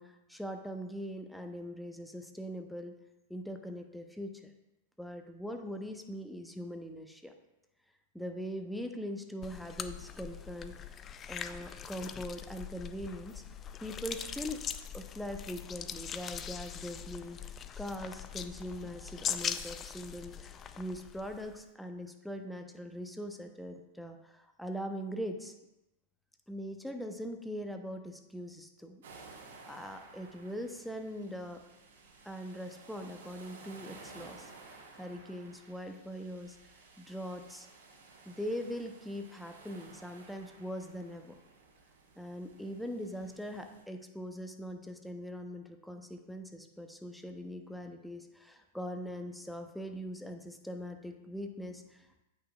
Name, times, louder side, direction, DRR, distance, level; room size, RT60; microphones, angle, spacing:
voice 1, 0.0-2.9 3.3-4.5 5.0-7.3 8.1-10.9 11.3-13.4 13.8-14.6 14.9-25.5 26.5-29.0 29.4-31.6 32.2-36.6 37.0-37.7 38.3-41.4 42.2-52.2, equal, ahead, 5 dB, 0.7 m, -41 dB
sound 1, 9.4-21.6, left 8 dB, 30° left, 0.4 m, -41 dB
sound 2, 29.0-43.8, right 3 dB, 65° right, 1.3 m, -55 dB
8.6 x 5.4 x 2.3 m, 0.94 s
hypercardioid pair, 100°, 0 cm